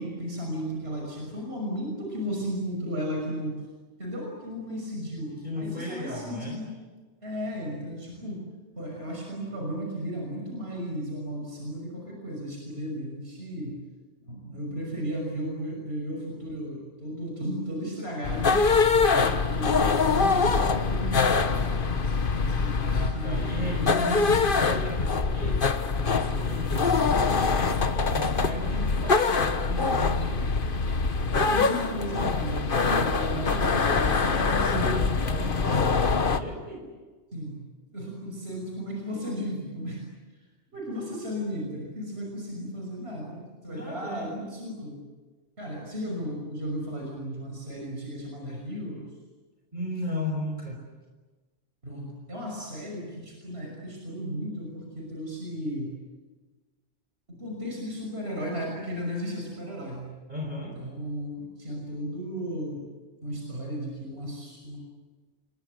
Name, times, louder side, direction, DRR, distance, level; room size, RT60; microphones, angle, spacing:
voice 1, 0.0-3.6 4.0-6.6 7.2-8.4 8.8-13.8 14.2-18.6 19.2-23.9 31.3-33.9 37.3-37.6 37.9-40.0 40.7-45.0 45.6-49.1 51.8-56.0 57.3-60.1 60.8-62.8 63.2-64.8, equal, 60° right, 0 dB, 6.2 m, -35 dB
voice 2, 5.4-6.6 22.8-25.6 25.9-30.4 33.1-36.8 43.7-44.3 49.7-50.8 60.3-60.8, left 1 dB, 40° right, 0 dB, 5.1 m, -35 dB
sound 1, 18.2-36.4, left 4 dB, 50° left, 1.4 m, -24 dB
28.5 x 23.0 x 8.1 m, 1.3 s
omnidirectional pair, 1.2 m